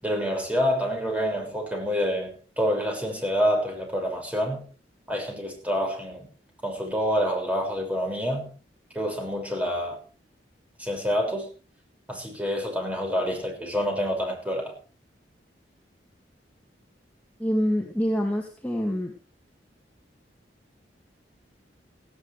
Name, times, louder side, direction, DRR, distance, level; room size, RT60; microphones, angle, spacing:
voice 1, 0.0-4.7 5.1-6.3 6.6-8.5 8.9-10.0 10.8-11.5 12.1-14.8, equal, 10° right, 6.1 m, -27 dB
voice 2, 17.4-19.1, equal, 10° left, 2.4 m, -26 dB
17.5 x 17.0 x 3.4 m
head